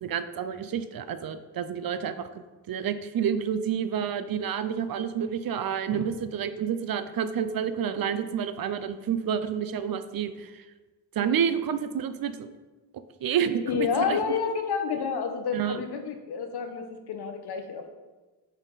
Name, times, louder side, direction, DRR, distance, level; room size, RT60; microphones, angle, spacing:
voice 1, 0.0-2.3 2.7-10.6 11.1-12.5 13.2-14.2 15.5-15.8, right 8 dB, 55° right, 11 dB, 0.5 m, -29 dB
voice 2, 13.6-17.9, left 6 dB, 65° left, 6 dB, 0.9 m, -29 dB
8.9 x 4.2 x 4.0 m, 1.2 s
wide cardioid pair, 130°, 42 cm